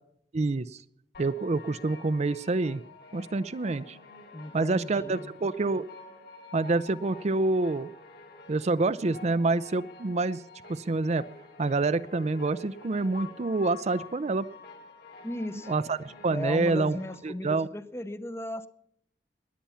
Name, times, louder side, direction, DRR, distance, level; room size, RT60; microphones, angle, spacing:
voice 1, 0.3-0.7 1.2-2.8 3.1-4.0 4.5-5.8 6.5-7.9 8.5-10.4 10.7-11.2 11.6-14.5 15.7-16.0 16.2-17.0 17.2-17.7, right 3 dB, 40° right, 14 dB, 0.5 m, -27 dB
sound 1, 1.1-17.2, left 3 dB, 65° left, 3.6 m, -48 dB
voice 2, 4.3-5.3 15.2-15.8 16.3-18.7, left 1 dB, 15° left, 13 dB, 0.8 m, -36 dB
20.5 x 8.5 x 5.7 m, 0.70 s
head